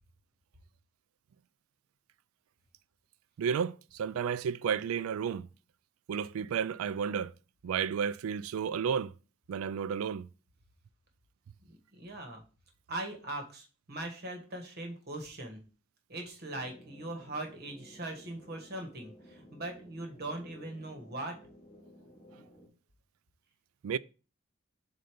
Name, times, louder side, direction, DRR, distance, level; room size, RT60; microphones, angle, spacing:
voice 1, 3.4-5.5 6.1-7.3 7.6-9.1 9.5-10.3 23.8-24.0, right 7 dB, 90° right, 0.3 m, -32 dB
voice 2, 11.7-12.4 12.9-15.6 16.1-21.4, right 2 dB, 50° right, 1.5 m, -40 dB
sound 1, 16.5-22.7, equal, 20° left, 2.0 m, -55 dB
7.6 x 2.8 x 5.0 m
head